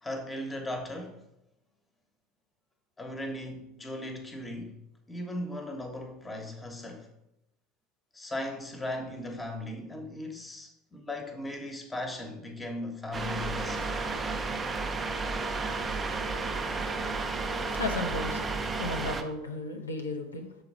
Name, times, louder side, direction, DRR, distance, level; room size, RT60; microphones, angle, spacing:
voice 1, 0.0-1.2 3.0-4.8 5.1-7.1 8.1-13.9, left 1 dB, 15° left, 1.2 m, -37 dB
sound 1, 13.1-19.2, right 3 dB, 20° right, 0.6 m, -32 dB
voice 2, 17.7-20.6, left 2 dB, 80° left, 0.6 m, -35 dB
6.7 x 4.0 x 4.8 m
figure-of-eight pair, 70°, 0 cm